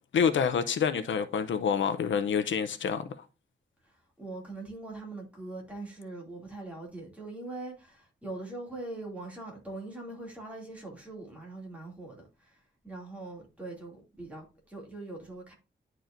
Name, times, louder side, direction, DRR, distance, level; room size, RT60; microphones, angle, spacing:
voice 1, 0.1-3.1, left 7 dB, 85° left, 0.6 m, -27 dB
voice 2, 3.8-15.5, right 2 dB, 5° right, 2.5 m, -42 dB
10.0 x 4.6 x 2.5 m
wide cardioid pair, 170°, 19 cm